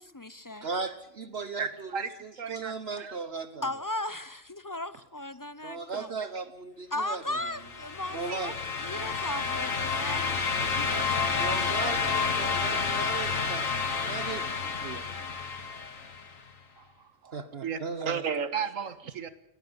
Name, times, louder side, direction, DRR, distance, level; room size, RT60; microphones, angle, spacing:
voice 1, 0.0-0.7 3.6-6.1 6.9-8.5 8.8-11.8, left 1 dB, 20° left, 15 dB, 0.6 m, -37 dB
voice 2, 0.6-3.7 5.6-7.4 8.1-8.6 11.4-15.0 17.3-18.2, right 4 dB, 55° right, 11 dB, 1.2 m, -37 dB
voice 3, 1.6-2.1 2.4-3.1 8.3-8.4 16.8-16.9 17.2-19.3, right 6 dB, 80° right, 13 dB, 1.7 m, -34 dB
sound 1, 7.4-16.3, left 5 dB, 85° left, 2.1 m, -30 dB
19.5 x 14.0 x 9.6 m, 0.80 s
omnidirectional pair, 1.3 m